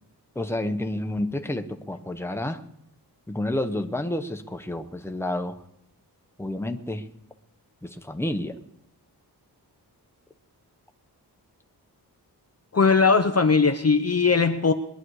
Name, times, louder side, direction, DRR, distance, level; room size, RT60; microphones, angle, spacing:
voice 1, 0.3-2.6 3.3-5.6 6.4-7.0 7.8-8.5, left 1 dB, 5° left, 1.1 m, -29 dB
voice 2, 12.7-14.7, left 4 dB, 35° left, 0.8 m, -19 dB
22.0 x 10.5 x 4.9 m
wide cardioid pair, 95°, 41 cm